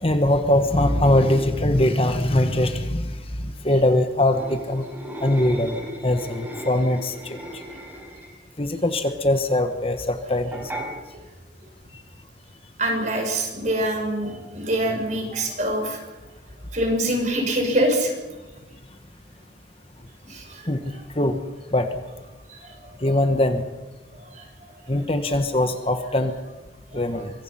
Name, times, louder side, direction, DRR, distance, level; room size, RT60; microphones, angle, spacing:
voice 1, 0.0-3.2 3.4-4.8 5.2-7.4 8.6-10.7 20.7-21.4 21.7-21.9 23.0-23.6 24.9-26.3 26.9-27.3, left 1 dB, 30° left, 7 dB, 1.3 m, -22 dB
Scraping slab - toilet, 4.2-8.5 10.5-10.9, right 1 dB, 10° right, 5.2 m, -36 dB
voice 2, 12.8-16.1 16.7-18.1 20.2-21.0 22.5-22.7 24.2-24.5 24.8-25.0 26.9-27.0, right 1 dB, 40° right, 3 dB, 5.9 m, -25 dB
25.0 x 23.5 x 5.8 m, 1.1 s
head